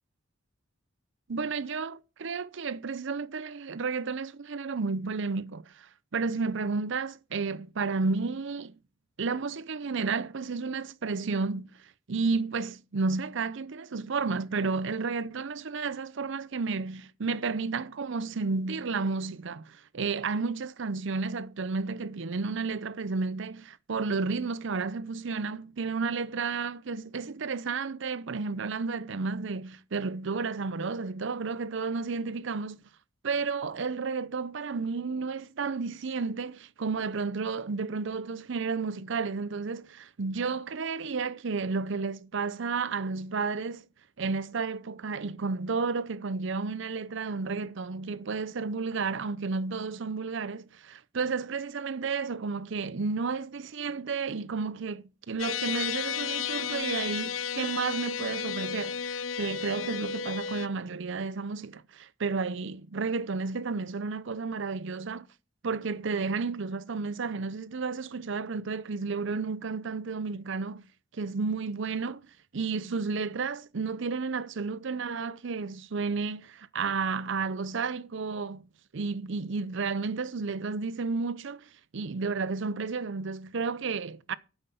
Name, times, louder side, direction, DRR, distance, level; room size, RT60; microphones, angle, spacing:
voice 1, 1.3-8.8 9.2-32.8 33.2-43.9 44.2-65.3 65.6-70.8 71.1-72.2 72.5-84.3, right 4 dB, 65° right, 0.6 m, -32 dB
sound 1, 55.4-60.7, left 7 dB, 75° left, 0.6 m, -33 dB
9.3 x 8.0 x 6.9 m
head